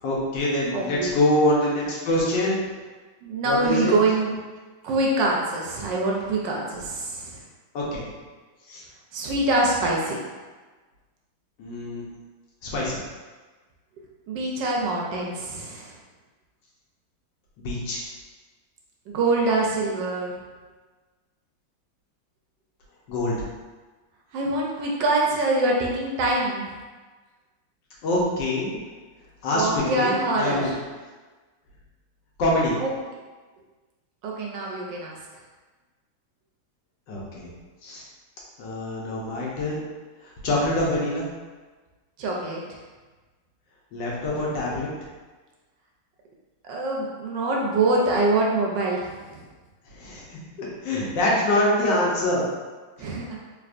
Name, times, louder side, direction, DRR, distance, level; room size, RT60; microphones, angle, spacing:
voice 1, 0.0-2.6 3.4-3.9 7.7-8.1 8.7-8.8 11.6-12.0 12.6-13.0 17.6-18.0 23.1-23.4 28.0-28.8 29.4-30.7 32.4-32.7 37.1-37.5 37.8-38.0 38.6-39.8 40.2-41.3 43.9-44.9 49.9-52.5, left 1 dB, 70° left, -4 dB, 1.4 m, -25 dB
voice 2, 0.7-1.1 3.2-4.3 4.8-7.4 9.1-10.2 14.3-15.9 19.1-20.3 24.3-26.7 29.5-30.7 32.8-32.9 34.2-35.2 42.2-42.6 46.6-49.4 53.0-53.4, right 2 dB, 75° right, -2 dB, 1.2 m, -24 dB
3.5 x 3.3 x 2.4 m, 1.3 s
omnidirectional pair, 2.2 m